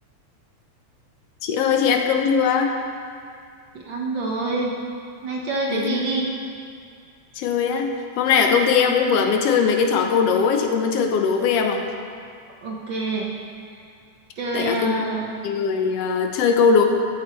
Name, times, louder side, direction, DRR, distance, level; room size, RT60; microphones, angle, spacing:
voice 1, 1.4-2.7 5.7-6.0 7.4-7.9 8.2-11.8 14.5-15.0 15.4-16.9, left 6 dB, 75° left, 4 dB, 1.5 m, -20 dB
voice 2, 3.7-4.7 5.2-6.3 12.6-13.3 13.7-13.8 14.4-15.3, right 2 dB, 60° right, -2 dB, 1.2 m, -26 dB
15.0 x 12.5 x 3.1 m, 2.3 s
omnidirectional pair, 3.7 m